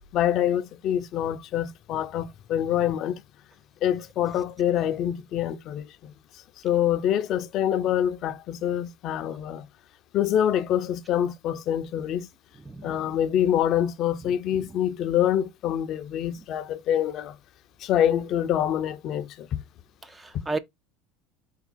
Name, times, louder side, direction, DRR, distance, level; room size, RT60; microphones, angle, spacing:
voice 1, 0.1-3.2 3.8-9.7 10.1-12.3 12.8-17.4 17.8-19.6 20.3-20.4, left 10 dB, 50° left, 0.5 m, -26 dB
voice 2, 12.7-13.1 20.0-20.6, right 3 dB, 15° right, 0.4 m, -33 dB
3.6 x 2.7 x 3.7 m
supercardioid pair, 110°, 0 cm